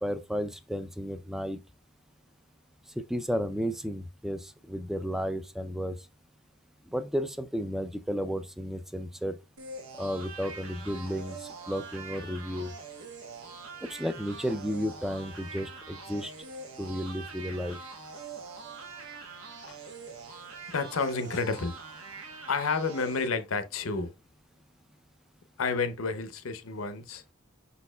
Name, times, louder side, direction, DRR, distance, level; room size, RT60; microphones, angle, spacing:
voice 1, 0.0-1.6 3.0-6.0 6.9-9.4 10.0-12.7 13.8-16.3 16.8-17.8, equal, ahead, 0.3 m, -33 dB
sound 1, 9.6-23.3, right 4 dB, 85° right, 1.1 m, -44 dB
voice 2, 20.7-21.8 22.5-24.1 25.6-27.2, left 4 dB, 70° left, 0.6 m, -30 dB
5.6 x 4.1 x 2.2 m
head